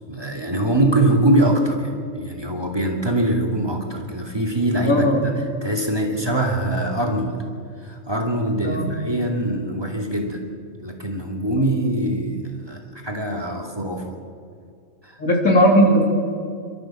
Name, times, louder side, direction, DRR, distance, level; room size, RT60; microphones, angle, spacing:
voice 1, 0.1-7.4 7.8-10.5 10.8-14.0 15.0-15.2, right 1 dB, 20° right, 1 dB, 2.5 m, -23 dB
voice 2, 4.9-5.2 8.6-8.9 15.2-16.1, equal, 90° left, 0 dB, 3.7 m, -16 dB
28.0 x 13.0 x 7.5 m, 2.3 s
omnidirectional pair, 1.4 m